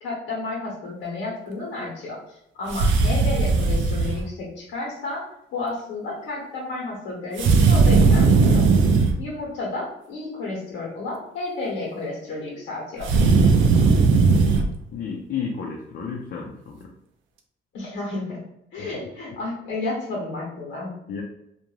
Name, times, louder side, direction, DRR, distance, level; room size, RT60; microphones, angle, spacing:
voice 1, 0.0-5.2 5.5-13.1 17.7-18.4 18.7-21.0, left 2 dB, 90° left, -3 dB, 1.1 m, -32 dB
sound 1, 2.7-4.2 7.4-9.2 13.0-14.7, right 4 dB, 75° right, 0.4 m, -17 dB
voice 2, 14.9-16.8 18.8-18.9 21.1-21.2, left 6 dB, 55° left, -1 dB, 0.5 m, -32 dB
2.5 x 2.2 x 3.0 m, 0.80 s
cardioid pair, 90°, 20 cm